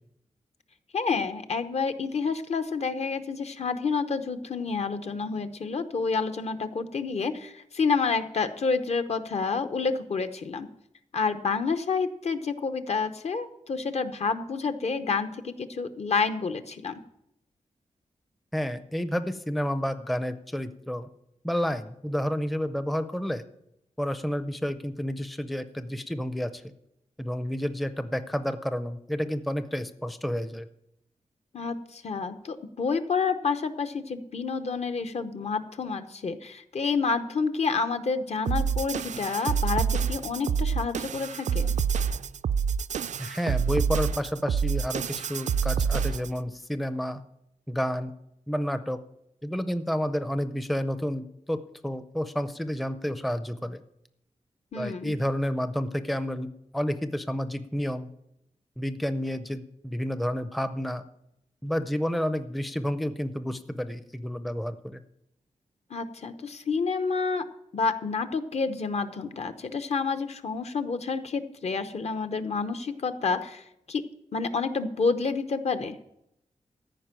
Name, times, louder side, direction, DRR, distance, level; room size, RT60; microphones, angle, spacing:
voice 1, 0.9-10.7 11.1-17.0 31.5-41.7 54.7-55.1 65.9-67.4 67.7-74.0 74.3-76.0, left 4 dB, 60° left, 10 dB, 0.8 m, -29 dB
voice 2, 18.5-21.1 21.4-23.4 24.0-26.6 27.2-30.7 43.2-47.2 47.7-48.1 48.5-49.0 49.4-53.8 54.7-56.5 56.7-58.1 58.8-61.0 61.6-65.0, equal, ahead, 10 dB, 0.5 m, -30 dB
sound 1, 38.5-46.4, right 6 dB, 70° right, 0.4 m, -27 dB
14.0 x 5.3 x 8.9 m, 0.81 s
wide cardioid pair, 175°, 13 cm